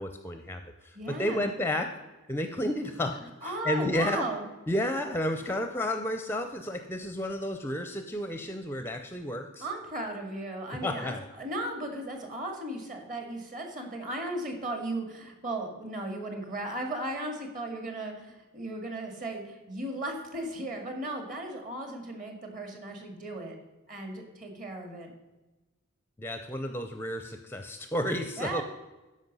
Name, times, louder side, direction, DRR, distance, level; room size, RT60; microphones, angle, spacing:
voice 1, 0.0-1.9 2.3-3.1 3.4-4.3 4.7-9.7 10.8-11.2 26.2-28.6, left 1 dB, 10° left, 7 dB, 0.5 m, -31 dB
voice 2, 0.9-1.5 3.4-4.4 9.6-23.5 23.9-25.1 28.4-28.6, right 1 dB, 40° right, 3 dB, 2.0 m, -36 dB
13.5 x 5.3 x 5.4 m, 1.1 s
head